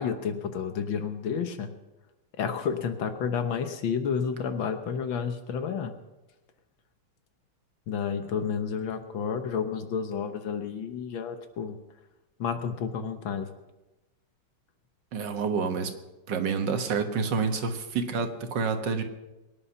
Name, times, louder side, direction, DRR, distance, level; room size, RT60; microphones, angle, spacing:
voice 1, 0.0-1.7 2.4-5.9 7.9-11.8 12.4-13.5, left 6 dB, 65° left, 8 dB, 1.8 m, -30 dB
voice 2, 15.1-15.9 16.3-19.0, right 5 dB, 60° right, 6 dB, 1.9 m, -28 dB
23.0 x 9.7 x 5.6 m, 1.0 s
omnidirectional pair, 2.4 m